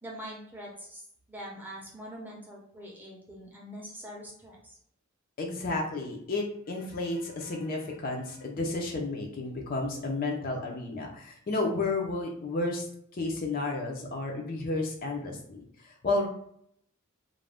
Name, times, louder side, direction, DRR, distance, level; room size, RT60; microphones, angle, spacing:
voice 1, 0.0-4.8, equal, 10° right, -3 dB, 0.6 m, -44 dB
voice 2, 5.4-12.9 13.1-16.3, left 2 dB, 40° left, 1 dB, 0.4 m, -32 dB
2.5 x 2.1 x 3.3 m, 0.67 s
head